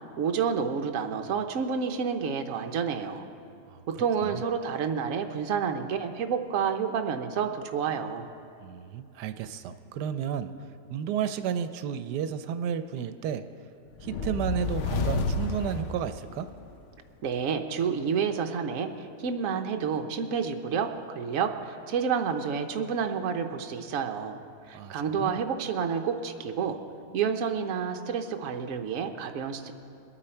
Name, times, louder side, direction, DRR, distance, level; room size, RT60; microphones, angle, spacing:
voice 1, 0.2-3.2 4.0-8.3 17.2-20.9 21.1-24.4 24.7-26.8 27.1-29.7, right 6 dB, 60° right, 5 dB, 1.1 m, -29 dB
voice 2, 8.6-10.5 10.9-13.4 14.0-16.5 24.7-25.4, right 8 dB, 85° right, 10 dB, 1.2 m, -32 dB
sound 1, 14.0-16.7, left 3 dB, 65° left, 0.8 m, -30 dB
22.5 x 8.9 x 4.4 m, 2.6 s
omnidirectional pair, 1.7 m